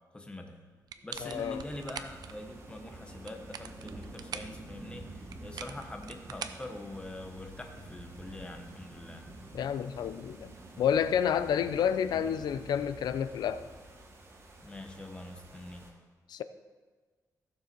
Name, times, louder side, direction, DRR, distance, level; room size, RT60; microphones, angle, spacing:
voice 1, 0.1-0.5 1.0-9.2 14.6-15.9, left 2 dB, 15° left, 1.2 m, -44 dB
sound 1, 0.9-2.3 3.1-4.6 5.3-7.3, right 8 dB, 70° right, 0.6 m, -43 dB
sound 2, 1.1-15.9, right 2 dB, 40° right, 1.6 m, -49 dB
voice 2, 1.2-1.6 9.5-10.5 10.8-13.7 16.3-16.4, left 8 dB, 80° left, 0.6 m, -29 dB
15.5 x 7.0 x 4.6 m
wide cardioid pair, 130°, 7 cm